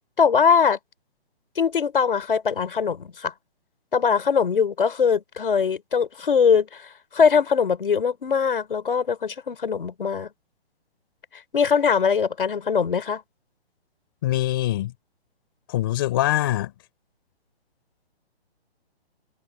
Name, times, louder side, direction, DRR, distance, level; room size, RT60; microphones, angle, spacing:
voice 1, 0.2-0.8 1.6-3.3 3.9-10.3 11.5-13.2, left 6 dB, 55° left, 5.8 m, -21 dB
voice 2, 14.2-14.9 15.7-16.7, left 14 dB, 20° left, 3.8 m, -23 dB
hypercardioid pair, 180°, 33 cm